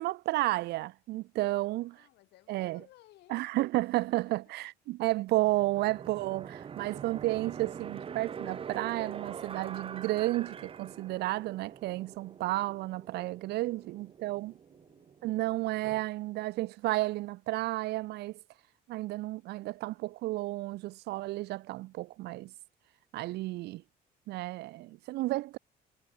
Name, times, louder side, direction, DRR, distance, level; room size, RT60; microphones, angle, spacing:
voice 1, 0.0-2.0 2.5-2.8 3.3-14.5 15.2-18.4 18.9-22.5 23.1-23.8 24.3-25.6, right 18 dB, 80° right, 0.8 m, -32 dB
voice 2, 1.6-3.4 3.8-4.4 13.6-14.4 14.6-15.3, left 17 dB, 80° left, 7.3 m, -61 dB
sound 1, 5.4-16.0, right 7 dB, 35° right, 0.8 m, -44 dB
cardioid pair, 110°, 17 cm